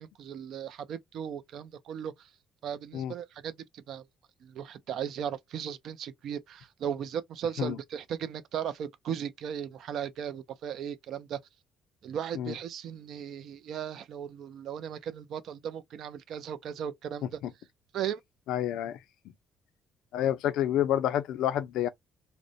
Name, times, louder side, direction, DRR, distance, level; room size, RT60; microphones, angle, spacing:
voice 1, 0.0-2.3 2.6-4.0 4.4-11.4 12.0-17.4 17.9-18.2, right 8 dB, 60° right, 0.4 m, -37 dB
voice 2, 18.5-19.0 20.1-21.9, left 11 dB, 85° left, 0.4 m, -28 dB
2.5 x 2.0 x 2.4 m
cardioid pair, 150°, 0 cm